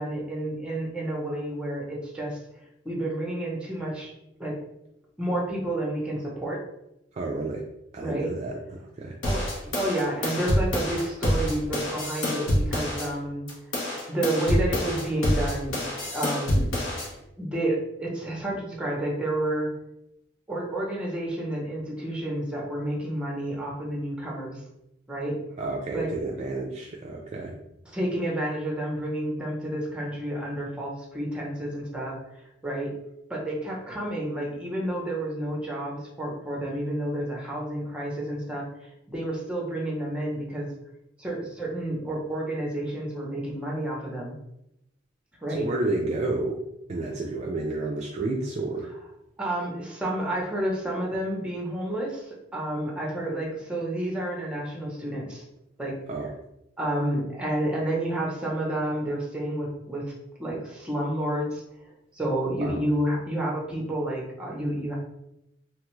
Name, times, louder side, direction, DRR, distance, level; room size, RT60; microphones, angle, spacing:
voice 1, 0.0-2.4 2.8-4.1 4.4-4.6 5.2-6.6 8.0-8.3 9.2-13.5 13.9-16.7 17.4-19.7 20.5-24.6 25.1-25.4 25.9-26.1 27.9-32.9 33.3-40.7 41.2-44.3 45.4-45.7 49.4-55.4 55.8-56.0 56.2-56.3 56.8-60.1 60.4-61.6 62.1-64.9, right 1 dB, 5° right, -3 dB, 0.7 m, -30 dB
voice 2, 7.1-7.6 7.9-9.2 25.6-27.5 45.6-46.6 46.9-48.9 56.1-56.3 62.6-62.8, right 2 dB, 35° right, -1 dB, 0.3 m, -30 dB
sound 1, 9.2-13.1 13.5-17.1, left 1 dB, 75° left, 1.0 m, -27 dB
3.0 x 2.3 x 3.0 m, 0.83 s
head